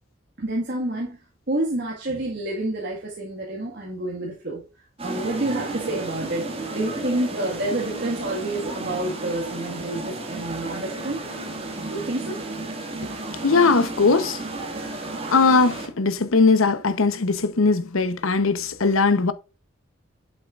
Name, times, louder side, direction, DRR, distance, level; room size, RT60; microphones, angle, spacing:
voice 1, 0.4-1.2 1.5-4.6 5.0-6.5 6.7-11.2 11.9-12.4, right 1 dB, 50° right, 1.8 m, -28 dB
sound 1, 5.0-15.9, right 2 dB, 30° right, 2.0 m, -33 dB
sound 2, 5.1-11.6, left 2 dB, 20° left, 3.3 m, -44 dB
voice 2, 13.4-14.4 15.3-19.3, left 4 dB, 85° left, 0.9 m, -19 dB
8.1 x 7.4 x 2.5 m
head